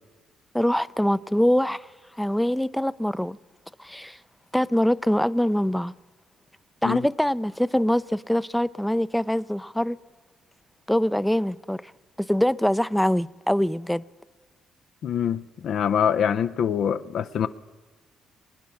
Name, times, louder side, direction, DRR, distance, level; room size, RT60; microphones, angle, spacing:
voice 1, 0.5-1.9 2.2-3.4 3.8-4.2 4.5-5.9 6.8-10.0 10.9-11.9 12.2-14.0, equal, 5° left, 0.4 m, -23 dB
voice 2, 15.0-17.5, left 8 dB, 70° left, 0.5 m, -24 dB
22.5 x 9.2 x 7.0 m
cardioid pair, 90°, 0 cm